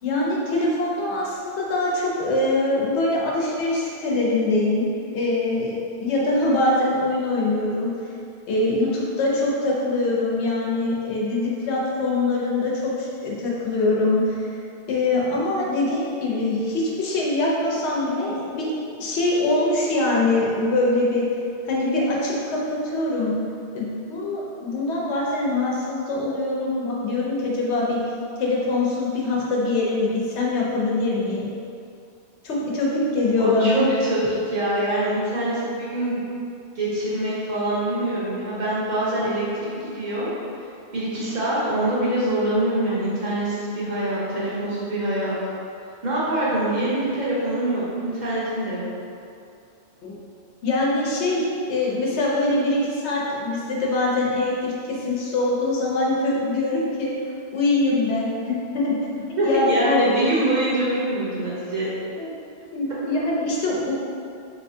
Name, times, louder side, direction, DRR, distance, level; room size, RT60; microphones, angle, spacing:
voice 1, 0.0-4.9 5.1-7.9 8.5-14.5 14.9-18.7 19.0-21.2 21.7-23.3 23.7-28.0 28.4-31.5 32.4-33.8 50.0-50.2 50.6-57.1 57.5-58.9 59.3-60.3 62.2-62.3 62.7-63.9, left 2 dB, 85° left, -4 dB, 1.0 m, -23 dB
voice 2, 33.4-36.2 36.7-40.6 40.9-45.4 46.0-48.9 59.4-61.9, right 1 dB, 50° right, -9 dB, 0.8 m, -24 dB
3.3 x 2.9 x 2.6 m, 2.5 s
omnidirectional pair, 1.1 m